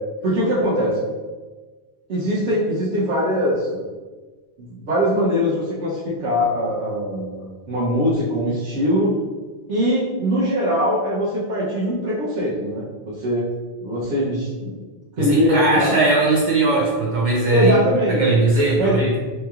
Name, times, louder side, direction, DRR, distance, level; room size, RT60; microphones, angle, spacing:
voice 1, 0.2-1.0 2.1-3.8 4.6-9.2 9.7-13.5 13.8-14.8 15.2-16.0 17.5-18.2 18.8-19.0, equal, 85° right, -7 dB, 1.1 m, -21 dB
voice 2, 15.2-17.8 18.1-19.1, right 2 dB, 55° right, -4 dB, 0.6 m, -19 dB
4.2 x 2.9 x 2.3 m, 1.3 s
omnidirectional pair, 1.2 m